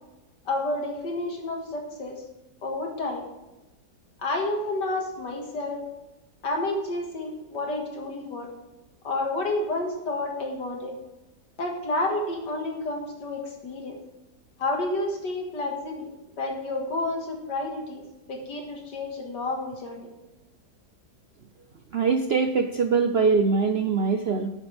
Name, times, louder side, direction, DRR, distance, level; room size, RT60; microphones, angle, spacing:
voice 1, 0.5-2.2 2.6-3.2 4.2-5.8 6.4-8.5 9.0-11.0 11.6-14.0 14.6-16.1 16.3-20.1, left 2 dB, 85° left, 2 dB, 2.5 m, -30 dB
voice 2, 21.9-24.5, right 5 dB, 65° right, 6 dB, 0.6 m, -23 dB
12.0 x 9.3 x 3.4 m, 1.1 s
omnidirectional pair, 1.8 m